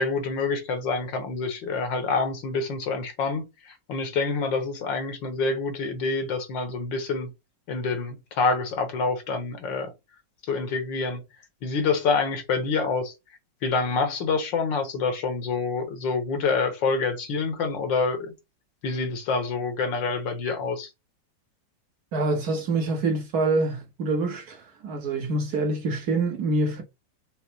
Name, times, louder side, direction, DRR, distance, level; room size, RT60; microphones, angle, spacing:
voice 1, 0.0-7.3 7.7-9.9 10.5-11.2 11.6-13.1 13.6-18.3 18.8-20.9, left 4 dB, 75° left, 1.8 m, -27 dB
voice 2, 22.1-26.8, right 2 dB, 60° right, 1.4 m, -26 dB
5.4 x 2.1 x 4.4 m
omnidirectional pair, 2.1 m